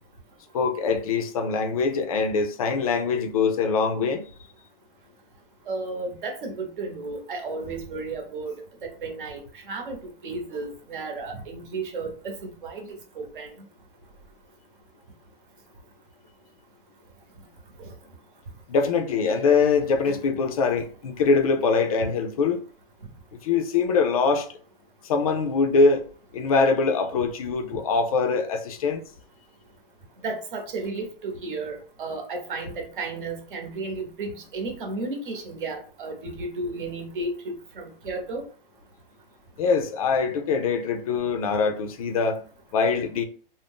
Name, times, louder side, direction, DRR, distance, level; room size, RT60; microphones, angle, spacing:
voice 1, 0.5-4.2 18.7-22.6 23.4-24.5 25.0-26.0 26.3-29.0 39.6-42.4 42.7-43.2, left 4 dB, 40° left, 0.4 m, -23 dB
voice 2, 5.7-10.0 10.2-13.5 17.8-17.9 30.2-38.4, right 3 dB, 60° right, 0.9 m, -33 dB
2.5 x 2.0 x 3.4 m
hypercardioid pair, 160°, 29 cm